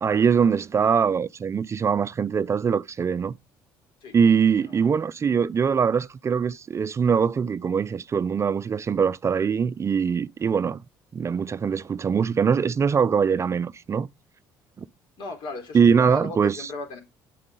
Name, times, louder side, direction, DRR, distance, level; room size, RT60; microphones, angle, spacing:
voice 1, 0.0-3.3 4.1-10.8 11.1-14.1 14.8-14.9 15.7-16.7, right 6 dB, 35° right, 0.4 m, -22 dB
voice 2, 15.2-17.0, left 2 dB, 70° left, 3.9 m, -35 dB
9.1 x 7.4 x 3.8 m
supercardioid pair, 80°, 9 cm